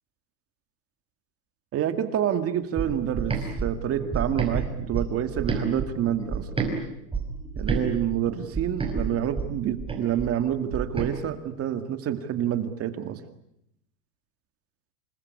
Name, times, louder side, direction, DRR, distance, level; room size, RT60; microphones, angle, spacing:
voice 1, 1.7-6.9 7.6-13.2, right 10 dB, 30° right, 10 dB, 2.0 m, -28 dB
sound 1, 2.8-6.7 7.1-11.1, right 4 dB, 10° right, 5.2 m, -30 dB
28.0 x 21.0 x 9.6 m, 0.78 s
supercardioid pair, 140°, 50 cm